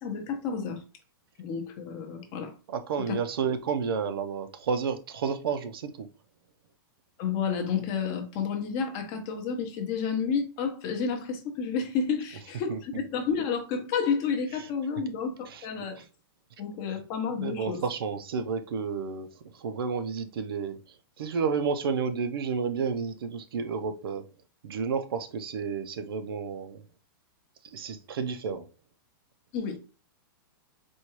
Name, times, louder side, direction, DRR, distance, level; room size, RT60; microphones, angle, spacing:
voice 1, 0.0-0.8 1.4-2.5 3.0-3.2 7.2-16.0 16.6-17.8 29.5-29.8, left 6 dB, 25° left, 0.7 m, -30 dB
voice 2, 2.7-6.1 12.7-12.8 15.5-15.7 16.0-16.1 17.4-19.3 19.5-20.8 21.2-24.2 24.6-26.8 27.7-28.6, right 5 dB, 80° right, 0.6 m, -31 dB
4.3 x 2.3 x 3.0 m
supercardioid pair, 175°, 12 cm